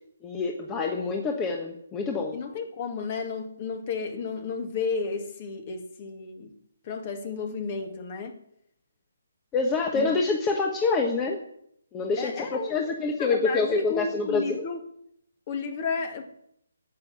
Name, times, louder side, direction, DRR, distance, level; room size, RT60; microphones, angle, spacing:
voice 1, 0.2-2.4 9.5-11.4 11.9-14.6, left 4 dB, 15° left, 1.3 m, -26 dB
voice 2, 2.3-6.5 6.8-8.4 9.9-10.1 12.2-12.8 13.2-14.8 15.5-16.3, left 5 dB, 35° left, 2.1 m, -32 dB
10.5 x 8.5 x 9.9 m
figure-of-eight pair, 150°, 0 cm